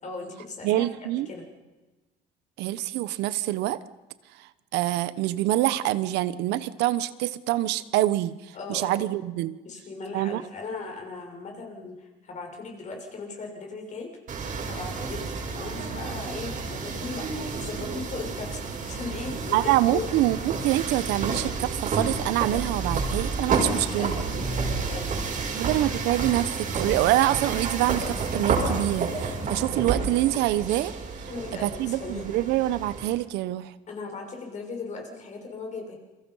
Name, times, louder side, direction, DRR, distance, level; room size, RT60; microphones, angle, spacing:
voice 1, 0.0-1.5 8.5-9.1 9.6-14.1 14.7-15.2 15.5-20.1 23.4-25.7 31.3-32.4 33.9-36.0, left 4 dB, 45° left, 1 dB, 6.6 m, -38 dB
voice 2, 0.6-1.3 2.6-3.8 4.4-9.6 10.1-10.4 19.5-24.2 25.5-31.3 31.6-33.7, right 15 dB, 90° right, 15 dB, 1.0 m, -26 dB
sound 1, 14.3-33.1, right 4 dB, 50° right, 6.1 m, -30 dB
28.5 x 23.0 x 5.7 m, 1.2 s
cardioid pair, 110°, 17 cm